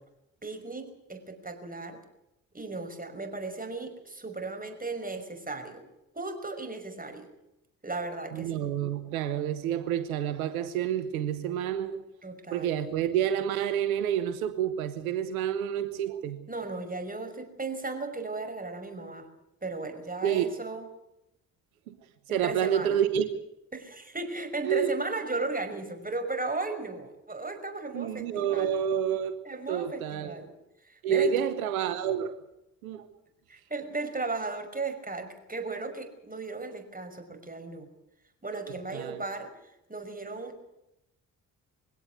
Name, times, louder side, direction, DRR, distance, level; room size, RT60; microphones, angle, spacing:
voice 1, 0.4-2.0 2.5-5.8 6.2-7.3 7.8-8.6 12.2-12.9 16.5-19.3 19.6-20.9 22.3-23.0 23.7-28.7 29.5-30.5 30.8-31.5 33.5-37.9 38.4-39.5 39.9-40.6, right 3 dB, 20° right, 6 dB, 5.8 m, -36 dB
voice 2, 8.3-12.1 12.5-16.5 20.2-20.4 21.9-22.0 22.3-23.3 24.6-24.9 27.9-29.4 29.7-30.3 31.0-32.4 32.8-33.1 38.5-39.2, right 9 dB, 85° right, 12 dB, 1.1 m, -29 dB
22.0 x 17.0 x 8.2 m, 0.87 s
hypercardioid pair, 40°, 42 cm